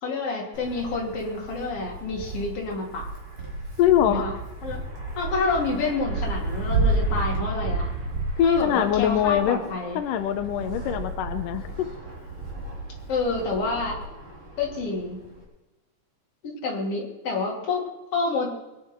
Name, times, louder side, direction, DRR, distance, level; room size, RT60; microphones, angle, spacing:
voice 1, 0.0-3.1 4.1-4.3 4.6-4.8 5.2-7.9 8.4-10.0 13.1-14.0 14.6-15.2 16.4-17.8 18.1-18.5, left 3 dB, 35° left, -2 dB, 3.5 m, -28 dB
Wind, 0.5-15.4, right 2 dB, 30° right, 3.5 m, -32 dB
voice 2, 3.8-4.4 8.4-9.6 10.0-11.9, left 10 dB, 90° left, 8 dB, 1.9 m, -23 dB
22.5 x 10.0 x 4.5 m, 1.1 s
omnidirectional pair, 5.0 m